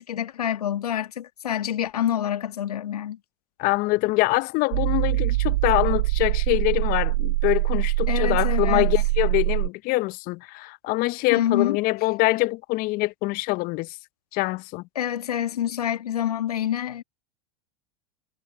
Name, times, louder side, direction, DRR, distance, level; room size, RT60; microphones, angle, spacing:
voice 1, 0.0-3.2 8.1-8.9 11.3-11.8 15.0-17.0, left 10 dB, 85° left, 1.6 m, -27 dB
voice 2, 3.6-14.0 14.3-14.8, left 22 dB, 50° left, 0.7 m, -24 dB
sound 1, 4.7-9.7, right 20 dB, 70° right, 0.5 m, -23 dB
hypercardioid pair, 90°, 19 cm